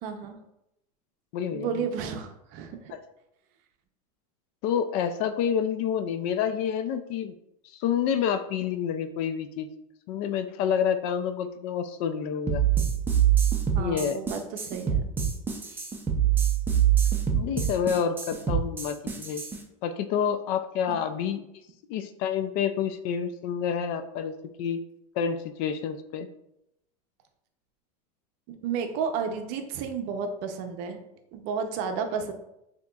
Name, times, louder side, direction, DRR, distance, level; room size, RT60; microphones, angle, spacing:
voice 1, 0.0-0.4 1.5-2.9 13.7-15.0 20.9-21.0 28.5-31.0 31.3-32.3, right 6 dB, 50° right, 6 dB, 0.6 m, -32 dB
voice 2, 1.3-1.9 4.6-7.3 7.7-9.7 10.1-12.7 13.8-14.2 17.3-19.4 19.8-21.4 21.9-24.3 24.6-24.8 25.2-26.3, left 8 dB, 50° left, 10 dB, 0.4 m, -28 dB
sound 1, 12.5-19.6, right 9 dB, 10° right, 0.5 m, -24 dB
6.3 x 2.9 x 2.3 m, 0.82 s
supercardioid pair, 145°, 20 cm